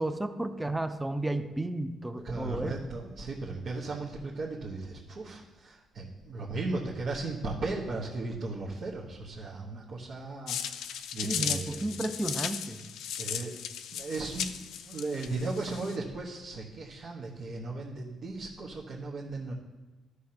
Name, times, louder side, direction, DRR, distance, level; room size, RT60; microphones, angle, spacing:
voice 1, 0.0-2.8 11.2-12.8, right 2 dB, 10° right, 9 dB, 0.6 m, -33 dB
voice 2, 2.2-10.8 11.1-11.8 13.2-13.6 13.9-19.5, right 3 dB, 60° right, -5 dB, 1.2 m, -36 dB
sound 1, 10.5-16.0, left 9 dB, 85° left, 0.5 m, -36 dB
12.5 x 6.4 x 2.9 m, 1.2 s
cardioid pair, 90°, 0 cm